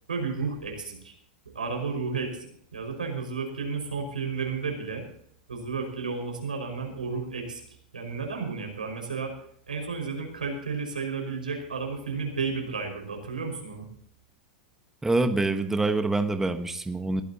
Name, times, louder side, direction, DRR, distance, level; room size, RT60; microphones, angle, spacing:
voice 1, 0.1-1.1 1.5-5.0 5.5-7.6 7.9-9.3 9.7-13.9, right 4 dB, 85° right, 3 dB, 5.3 m, -32 dB
voice 2, 15.0-17.2, right 2 dB, 10° right, 9 dB, 1.2 m, -25 dB
22.0 x 15.0 x 2.9 m, 0.65 s
hypercardioid pair, 95°, 4 cm